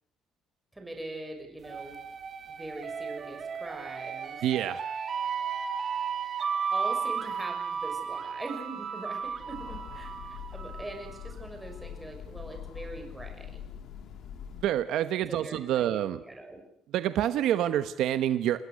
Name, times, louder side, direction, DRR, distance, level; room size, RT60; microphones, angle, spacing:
voice 1, 0.7-1.9 2.5-4.4 6.7-13.6 15.3-16.6, right 2 dB, 5° right, 3 dB, 6.5 m, -42 dB
sound 1, 1.6-11.3, right 6 dB, 30° right, 2.3 m, -34 dB
voice 2, 4.4-4.8 14.6-16.2 16.9-18.6, right 11 dB, 60° right, 11 dB, 1.2 m, -27 dB
Train, 9.2-15.0, left 8 dB, 50° left, 2.9 m, -44 dB
28.5 x 21.0 x 6.5 m, 0.67 s
cardioid pair, 170°, 0 cm